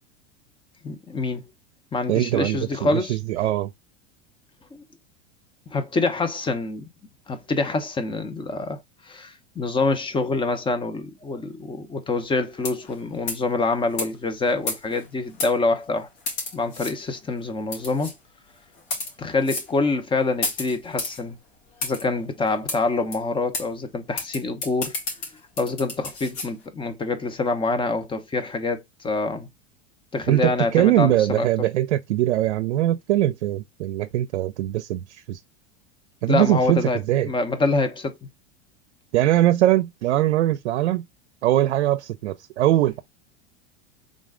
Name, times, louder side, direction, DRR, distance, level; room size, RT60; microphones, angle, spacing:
voice 1, 0.8-1.4 1.9-3.2 4.7-4.8 5.7-6.9 7.3-16.1 16.5-18.1 19.2-21.4 21.8-25.0 25.6-29.5 30.1-31.5 36.3-38.2, left 3 dB, 15° left, 0.9 m, -26 dB
voice 2, 2.1-3.7 30.3-35.4 36.2-37.3 39.1-41.1 41.4-43.0, right 14 dB, 85° right, 0.6 m, -21 dB
sound 1, 12.6-12.9 13.3-13.5 14.0-14.1 14.7-15.0 15.4-15.5 16.3-16.9 17.7-18.1 18.8-19.1 19.5-19.7 20.4-21.2 21.8-22.0 22.7-22.8 23.1-23.2 23.5-23.7 24.2-26.5, left 3 dB, 65° left, 2.3 m, -31 dB
3.8 x 3.2 x 3.7 m
hypercardioid pair, 115°, 34 cm